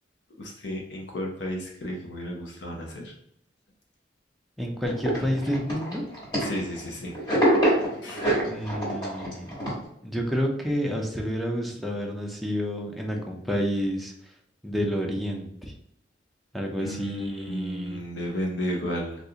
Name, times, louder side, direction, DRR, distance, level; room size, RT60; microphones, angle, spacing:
voice 1, 0.4-3.0 6.4-7.1 8.0-8.2 16.8-19.2, equal, 75° left, -1 dB, 0.7 m, -33 dB
voice 2, 4.6-6.0 8.5-9.5 10.0-14.3 14.6-15.7 16.5-18.0, equal, ahead, 0 dB, 0.4 m, -29 dB
sound 1, 4.8-6.9 7.1-9.8, right 1 dB, 25° left, 1.3 m, -25 dB
3.7 x 2.4 x 2.8 m, 0.72 s
head